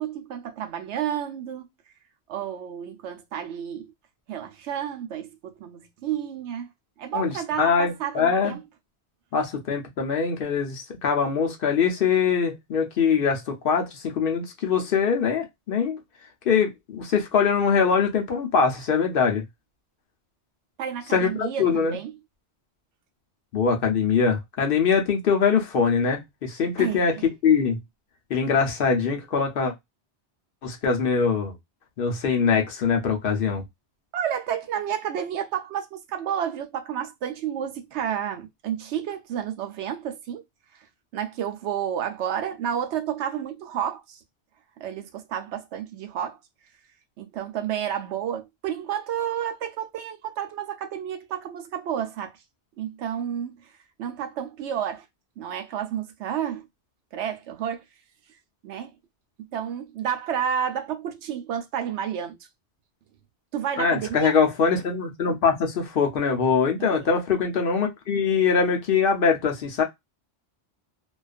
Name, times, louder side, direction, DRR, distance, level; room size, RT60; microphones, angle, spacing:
voice 1, 0.0-1.7 2.3-3.9 4.3-6.7 7.0-8.6 20.8-22.1 26.8-27.2 34.1-40.4 40.7-40.9 41.1-44.2 44.8-46.4 47.2-52.4 52.8-53.7 54.0-55.0 55.4-56.7 57.1-57.8 58.6-58.9 59.5-62.4 63.5-64.3 66.8-67.1, right 9 dB, 85° right, 0.9 m, -31 dB
voice 2, 7.1-8.6 9.3-16.0 16.5-19.4 21.1-21.9 23.5-27.1 27.4-27.8 28.3-29.7 30.6-31.5 32.0-33.6 63.8-69.8, left 6 dB, 60° left, 0.8 m, -23 dB
2.4 x 2.3 x 2.3 m
omnidirectional pair, 1.1 m